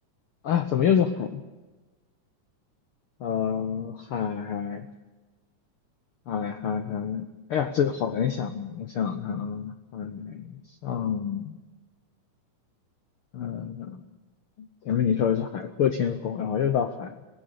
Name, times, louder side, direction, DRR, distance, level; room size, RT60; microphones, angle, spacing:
voice 1, 0.4-1.4 3.2-4.9 6.3-11.6 13.3-14.0 14.8-17.1, left 8 dB, 85° left, 8 dB, 1.2 m, -27 dB
23.0 x 19.0 x 6.6 m, 1.2 s
omnidirectional pair, 3.8 m